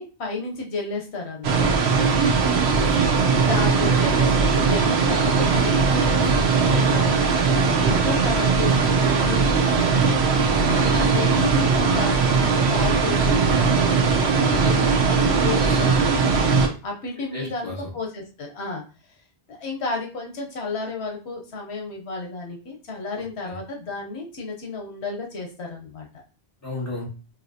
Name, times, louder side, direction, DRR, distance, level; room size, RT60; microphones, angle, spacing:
voice 1, 0.0-1.8 3.1-16.3 16.8-18.8 19.5-26.1, left 3 dB, 85° left, 0 dB, 1.2 m, -32 dB
sound 1, 1.4-16.7, right 5 dB, 80° right, 1.0 m, -19 dB
voice 2, 2.2-3.8 10.5-10.9 15.5-16.0 17.3-17.9 23.1-23.6 26.6-27.0, left 2 dB, 15° left, -5 dB, 1.6 m, -35 dB
5.5 x 2.7 x 2.7 m, 0.35 s
omnidirectional pair, 1.1 m